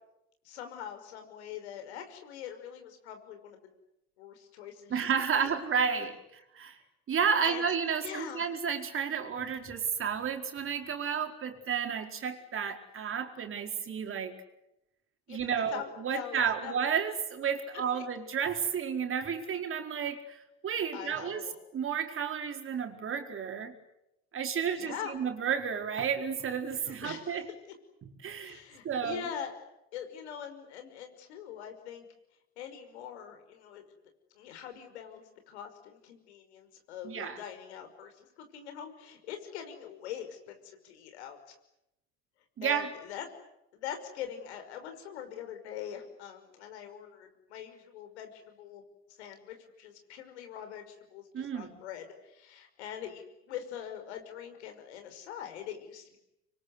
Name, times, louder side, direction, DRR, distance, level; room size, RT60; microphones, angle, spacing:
voice 1, 0.4-3.6 4.2-5.0 5.4-5.6 7.4-7.6 8.0-8.5 15.3-15.4 15.7-16.7 17.7-18.0 20.9-21.5 24.8-25.1 26.9-27.4 28.4-32.1 32.6-33.9 34.3-41.5 42.6-43.3 43.7-48.8 49.2-56.2, left 9 dB, 90° left, 6 dB, 5.7 m, -43 dB
voice 2, 4.9-6.8 7.1-14.3 15.3-20.4 20.6-21.4 21.7-23.7 24.3-27.5 28.2-28.6 28.8-29.2 37.0-37.4 42.6-42.9 51.3-51.7, right 7 dB, 40° right, 5 dB, 4.6 m, -32 dB
26.0 x 23.5 x 9.7 m, 0.86 s
supercardioid pair, 90°, 32 cm